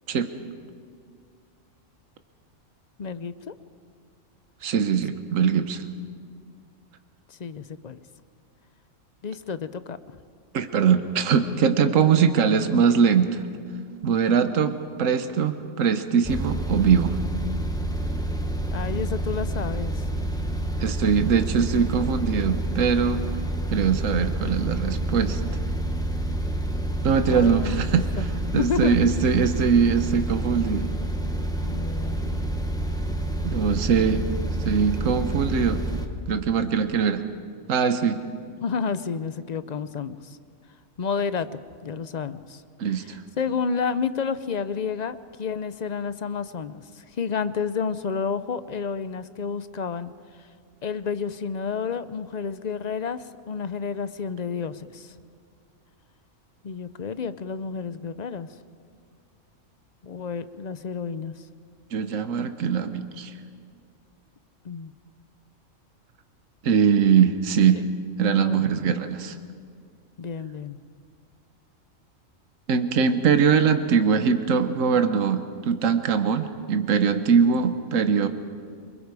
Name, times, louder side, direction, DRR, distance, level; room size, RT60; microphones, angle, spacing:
voice 1, 3.0-3.5 7.3-8.0 9.2-10.0 18.7-20.0 27.3-28.3 28.5-29.1 31.6-32.4 38.6-40.4 41.0-41.5 41.8-42.6 42.9-50.1 50.8-55.1 56.6-58.5 60.0-61.3 64.6-64.9 68.3-68.9 70.2-70.8, left 6 dB, 45° left, 13 dB, 0.5 m, -30 dB
voice 2, 4.6-5.8 10.5-13.4 14.0-17.2 20.8-23.2 23.7-25.4 27.0-28.1 28.5-30.9 33.4-34.2 34.6-35.8 36.3-37.2 37.7-38.2 42.8-43.2 61.9-63.3 66.6-67.8 68.2-69.4 72.7-78.3, right 6 dB, 75° right, 9 dB, 1.3 m, -22 dB
sound 1, 16.2-36.1, right 1 dB, 5° left, 1.2 m, -28 dB
28.0 x 21.5 x 4.8 m, 2.2 s
omnidirectional pair, 1.3 m